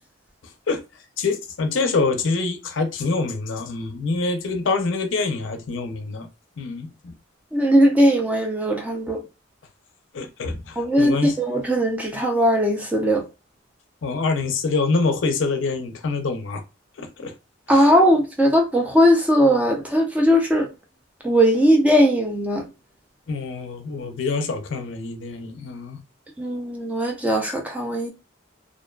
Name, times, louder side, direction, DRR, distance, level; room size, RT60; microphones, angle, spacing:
voice 1, 1.2-6.3 6.6-7.1 10.1-11.4 14.0-16.6 17.0-17.3 17.7-17.9 23.3-26.0, left 3 dB, 70° left, 0.5 m, -25 dB
voice 2, 7.5-9.2 10.8-13.2 17.7-20.7 21.2-22.7 26.4-28.1, equal, 5° right, 0.4 m, -19 dB
2.4 x 2.2 x 2.2 m
head